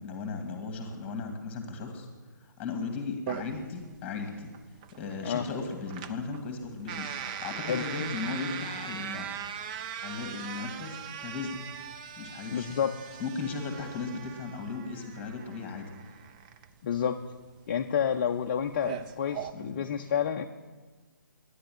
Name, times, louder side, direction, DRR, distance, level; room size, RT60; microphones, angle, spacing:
voice 1, 0.0-2.1 2.4-4.5 4.9-9.3 10.0-11.6 12.2-12.8 13.2-15.9 19.5-19.8, left 4 dB, 15° left, 5 dB, 2.0 m, -36 dB
sound 1, 3.3-19.5, right 8 dB, 20° right, 0.5 m, -40 dB
voice 2, 12.5-13.0 16.8-17.2 17.7-20.4, left 8 dB, 35° left, 5 dB, 0.5 m, -29 dB
12.5 x 10.0 x 7.6 m, 1.4 s
figure-of-eight pair, 135°, 11 cm